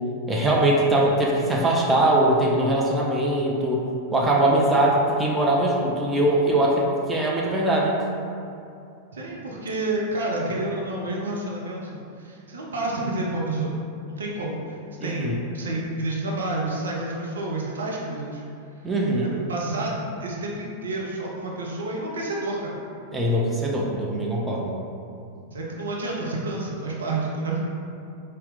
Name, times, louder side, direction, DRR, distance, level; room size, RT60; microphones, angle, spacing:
voice 1, 0.3-3.8 4.1-7.9 15.0-15.4 18.8-19.3 23.1-24.8, right 1 dB, 15° right, -3 dB, 0.5 m, -21 dB
voice 2, 9.1-13.7 14.1-18.4 19.2-19.9 20.2-22.8 25.5-27.7, right 2 dB, 65° right, -3 dB, 0.6 m, -29 dB
4.1 x 2.1 x 3.8 m, 2.6 s
figure-of-eight pair, 90°, 0 cm